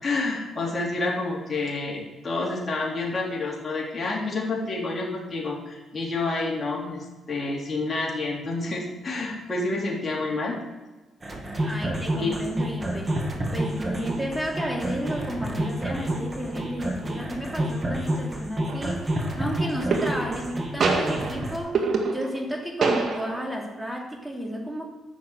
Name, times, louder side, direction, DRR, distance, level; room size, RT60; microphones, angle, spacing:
voice 1, 0.0-10.6 12.1-12.3, left 3 dB, 30° left, -3 dB, 3.4 m, -29 dB
sound 1, 11.2-21.6, right 1 dB, 25° right, 2.1 m, -29 dB
voice 2, 11.6-13.2 13.5-24.9, equal, 5° right, 0 dB, 2.9 m, -32 dB
sound 2, 18.6-19.0 19.9-20.5 20.8-22.5 22.8-23.6, right 4 dB, 55° right, 1.8 m, -26 dB
10.5 x 6.7 x 8.0 m, 1.2 s
cardioid pair, 90°, 0 cm